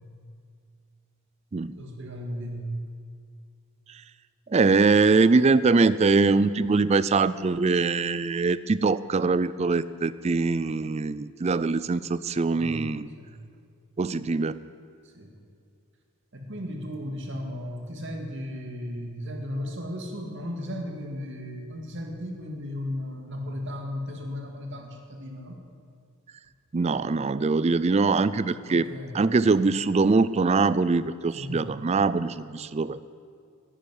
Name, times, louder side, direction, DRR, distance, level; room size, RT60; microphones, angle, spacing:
voice 1, 1.6-2.8 12.5-12.8 13.2-13.3 15.1-15.3 16.3-25.6 28.7-29.2 31.3-31.6, left 1 dB, 55° right, 2 dB, 2.1 m, -35 dB
voice 2, 4.5-13.1 14.0-14.6 26.7-33.0, right 4 dB, 30° right, 16 dB, 0.3 m, -23 dB
10.5 x 10.0 x 9.9 m, 2.2 s
head